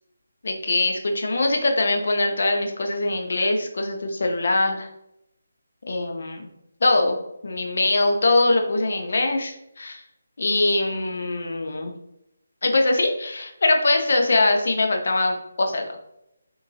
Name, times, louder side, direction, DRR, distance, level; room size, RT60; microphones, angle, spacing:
voice 1, 0.4-4.9 5.9-6.5 6.8-7.2 7.4-10.0 10.4-11.9 12.6-15.9, left 2 dB, 55° left, 3 dB, 0.5 m, -22 dB
3.7 x 2.6 x 2.3 m, 0.83 s
figure-of-eight pair, 150°, 0 cm